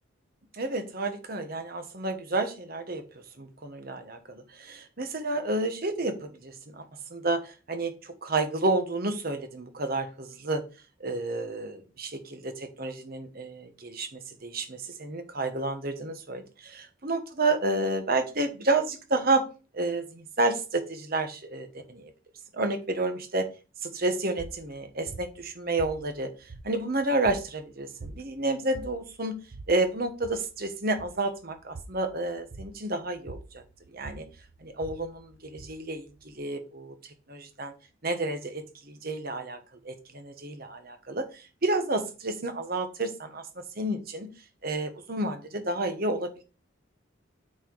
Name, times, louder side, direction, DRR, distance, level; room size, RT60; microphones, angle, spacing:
voice 1, 0.5-3.0 3.4-6.8 7.1-10.6 11.0-19.4 19.7-22.1 22.5-23.5 23.8-26.3 26.6-29.3 29.7-33.6 33.9-34.2 34.6-37.7 38.0-39.6 39.8-43.4 43.8-44.3 44.6-46.4, right 2 dB, 45° right, 8 dB, 1.3 m, -30 dB
sound 1, 24.4-36.4, right 3 dB, 90° right, 0.8 m, -47 dB
8.6 x 4.6 x 4.7 m, 0.33 s
head